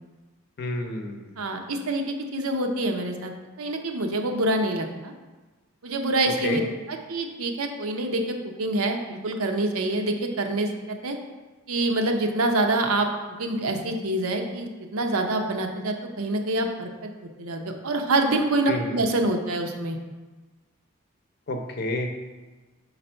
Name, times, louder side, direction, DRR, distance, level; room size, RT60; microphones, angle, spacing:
voice 1, 0.6-1.4 6.4-6.6 18.7-19.0 21.5-22.1, left 1 dB, 50° left, 4 dB, 0.7 m, -30 dB
voice 2, 1.4-3.3 3.6-5.1 5.8-6.6 6.9-11.2 11.7-13.1 13.4-20.0, right 2 dB, 80° right, 4 dB, 0.7 m, -26 dB
6.0 x 4.1 x 4.4 m, 1.2 s
head